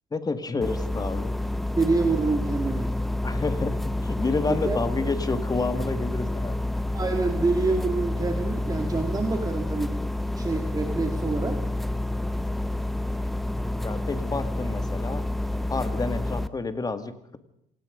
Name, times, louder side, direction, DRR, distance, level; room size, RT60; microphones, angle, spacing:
voice 1, 0.1-1.3 3.2-6.7 13.8-15.2 15.7-17.4, left 3 dB, 20° left, 10 dB, 2.1 m, -29 dB
sound 1, 0.6-16.5, left 1 dB, ahead, 1.0 m, -29 dB
voice 2, 1.8-2.9 4.4-4.8 6.9-10.0 10.3-11.6, right 3 dB, 20° right, 5 dB, 2.4 m, -26 dB
27.0 x 18.0 x 5.3 m, 0.74 s
cardioid pair, 110°, 17 cm